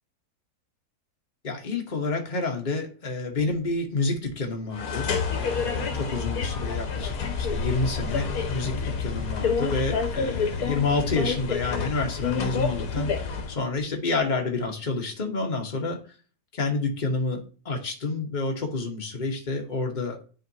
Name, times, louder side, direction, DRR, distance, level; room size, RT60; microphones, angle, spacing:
voice 1, 1.4-16.0 16.5-20.2, left 3 dB, 30° left, 2 dB, 1.3 m, -29 dB
sound 1, 4.7-13.6, left 5 dB, 65° left, 1.4 m, -28 dB
10.0 x 3.8 x 2.8 m, 0.38 s
omnidirectional pair, 1.7 m